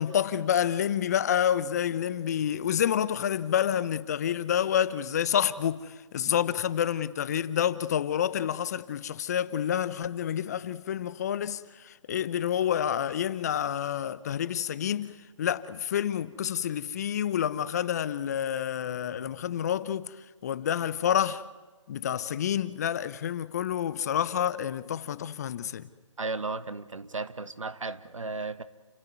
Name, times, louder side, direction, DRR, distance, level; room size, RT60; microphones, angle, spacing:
voice 1, 0.0-21.4 21.9-25.9, left 9 dB, 30° left, 0.8 m, -28 dB
voice 2, 26.2-28.6, right 3 dB, 80° right, 1.6 m, -35 dB
29.5 x 16.5 x 9.3 m
figure-of-eight pair, 155°, 16 cm